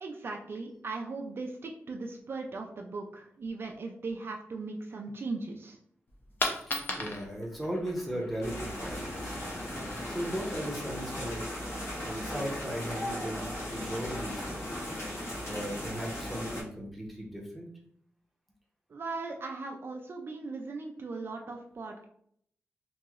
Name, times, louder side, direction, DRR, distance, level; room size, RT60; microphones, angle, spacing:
voice 1, 0.0-5.8 18.9-22.0, right 3 dB, 50° right, 2 dB, 0.3 m, -38 dB
Coin (dropping), 6.1-12.1, left 2 dB, 45° left, 0.5 m, -39 dB
voice 2, 6.5-9.4 10.1-11.5 12.0-14.8 15.5-17.7, equal, ahead, -1 dB, 0.7 m, -37 dB
sound 1, 8.4-16.6, left 1 dB, 65° left, 1.1 m, -37 dB
3.0 x 2.7 x 2.4 m, 0.66 s
wide cardioid pair, 125°, 5 cm